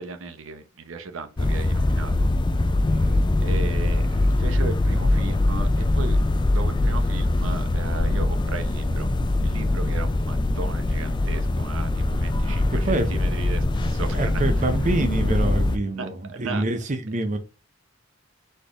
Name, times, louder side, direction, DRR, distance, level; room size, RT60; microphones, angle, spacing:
voice 1, 0.0-2.3 3.0-6.2 6.4-9.1 9.4-14.4 16.0-16.6, right 4 dB, 80° right, 0.8 m, -36 dB
sound 1, 1.4-15.8, left 2 dB, 25° left, 0.4 m, -22 dB
voice 2, 2.9-3.2 12.4-12.5 12.7-13.4 14.1-17.4, right 2 dB, 40° right, 0.7 m, -27 dB
4.3 x 3.3 x 3.4 m
head